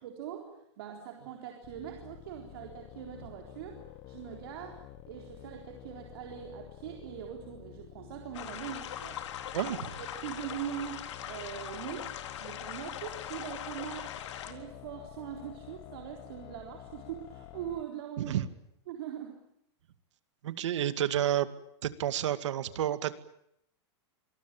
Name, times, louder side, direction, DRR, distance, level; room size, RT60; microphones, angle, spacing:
voice 1, 0.0-9.2 9.6-14.2 14.5-18.4 18.9-19.4, right 10 dB, 55° right, 2 dB, 4.0 m, -42 dB
sound 1, 1.6-17.8, left 13 dB, 30° left, 1.3 m, -50 dB
sound 2, 8.3-14.5, left 10 dB, 80° left, 3.8 m, -41 dB
voice 2, 9.5-9.9 18.2-18.5 20.4-21.5 21.8-23.1, right 11 dB, 85° right, 12 dB, 2.2 m, -30 dB
26.0 x 21.0 x 9.1 m, 0.75 s
supercardioid pair, 175°, 15 cm